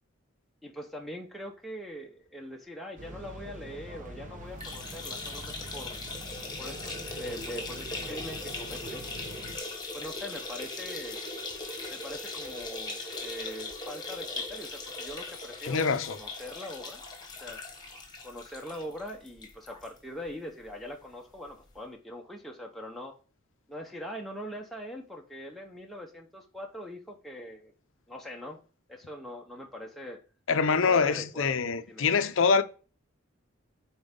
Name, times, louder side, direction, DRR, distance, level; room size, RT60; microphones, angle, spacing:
voice 1, 0.6-6.0 6.6-9.0 9.9-11.2 11.9-17.0 17.4-17.6 18.2-23.1 23.7-27.7 28.1-28.6 28.9-30.2 30.7-31.5 31.9-32.1, equal, ahead, 0.7 m, -42 dB
sound 1, 3.0-9.6, right 1 dB, 40° right, 1.1 m, -44 dB
sound 2, 4.5-19.9 20.3-20.4 20.7-20.8 21.8-21.9, left 3 dB, 20° left, 1.3 m, -39 dB
voice 2, 15.6-16.2 30.5-32.6, left 5 dB, 70° left, 0.6 m, -25 dB
7.7 x 4.4 x 3.7 m
head